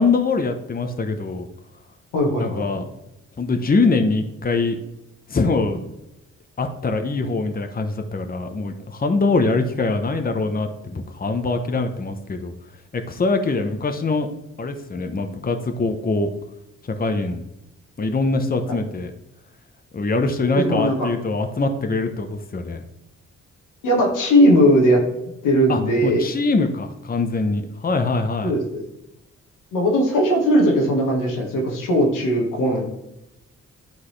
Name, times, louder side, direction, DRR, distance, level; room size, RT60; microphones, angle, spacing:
voice 1, 0.0-1.5 2.4-2.8 3.4-4.8 5.3-5.9 6.6-12.5 12.9-14.3 14.6-16.3 16.8-17.4 18.0-19.1 19.9-22.8 25.7-28.5, left 3 dB, 30° left, 6 dB, 0.9 m, -23 dB
voice 2, 2.1-2.6 18.7-18.8 20.6-21.1 23.8-25.0 25.4-26.3 28.4-28.8 29.7-32.8, equal, 90° left, -1 dB, 1.7 m, -18 dB
11.5 x 4.0 x 3.3 m, 0.88 s
supercardioid pair, 60°, 31 cm